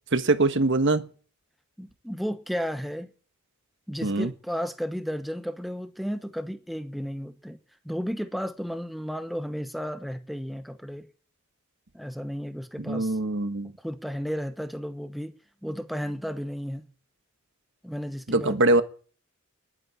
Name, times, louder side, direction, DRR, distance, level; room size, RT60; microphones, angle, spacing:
voice 1, 0.1-1.0 4.0-4.3 12.9-13.7 18.3-18.8, right 2 dB, 55° right, 1.3 m, -23 dB
voice 2, 1.8-3.1 3.9-7.6 7.8-11.1 11.9-13.2 13.8-15.3 15.6-16.8 17.8-18.6, equal, ahead, 0.9 m, -33 dB
11.0 x 9.4 x 9.7 m
head